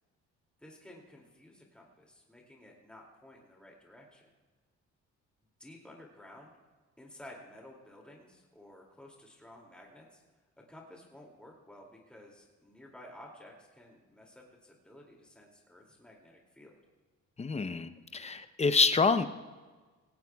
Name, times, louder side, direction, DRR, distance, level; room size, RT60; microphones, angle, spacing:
voice 1, 0.6-4.3 5.6-6.5 7.0-10.2 10.7-16.8, left 1 dB, 5° left, -1 dB, 2.5 m, -53 dB
voice 2, 17.4-19.3, left 4 dB, 20° left, 11 dB, 0.7 m, -27 dB
18.0 x 17.0 x 2.3 m, 1.3 s
cardioid pair, 90°, 30 cm